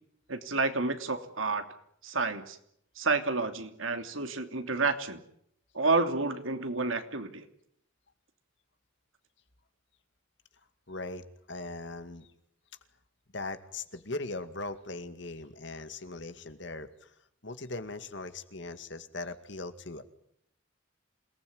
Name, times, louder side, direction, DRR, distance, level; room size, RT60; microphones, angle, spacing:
voice 1, 0.3-1.6 2.0-2.6 3.0-5.2 5.7-7.4, right 3 dB, 85° right, 7 dB, 3.0 m, -30 dB
voice 2, 10.9-12.3 13.3-17.1 17.4-20.0, left 2 dB, 60° left, 9 dB, 2.3 m, -39 dB
27.5 x 19.5 x 9.6 m, 0.73 s
head